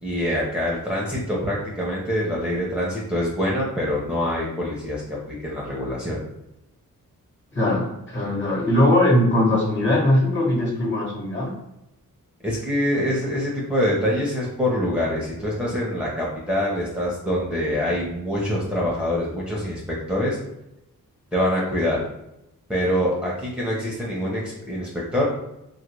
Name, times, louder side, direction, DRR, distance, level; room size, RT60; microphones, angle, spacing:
voice 1, 0.0-5.0 5.3-6.2 12.4-20.4 21.3-22.0 22.7-25.3, equal, 5° right, -5 dB, 0.8 m, -25 dB
voice 2, 7.5-11.5, left 1 dB, 30° left, -2 dB, 1.5 m, -20 dB
2.8 x 2.6 x 3.0 m, 0.87 s
cardioid pair, 55°, 35 cm